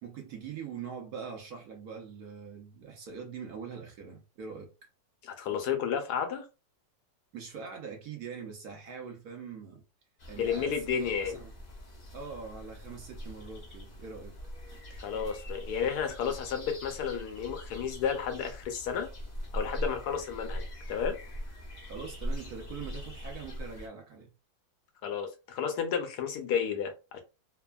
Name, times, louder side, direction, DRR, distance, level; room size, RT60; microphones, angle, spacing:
voice 1, 0.0-4.7 7.3-9.8 10.2-11.5 12.1-14.3 21.9-24.3, right 6 dB, 65° right, 1.0 m, -43 dB
voice 2, 5.2-6.5 10.4-11.4 15.0-19.1 19.5-20.6 20.9-21.2 25.0-27.2, left 7 dB, 70° left, 1.0 m, -32 dB
sound 1, 10.2-23.9, equal, 55° left, 0.4 m, -41 dB
3.3 x 2.0 x 2.2 m
omnidirectional pair, 2.0 m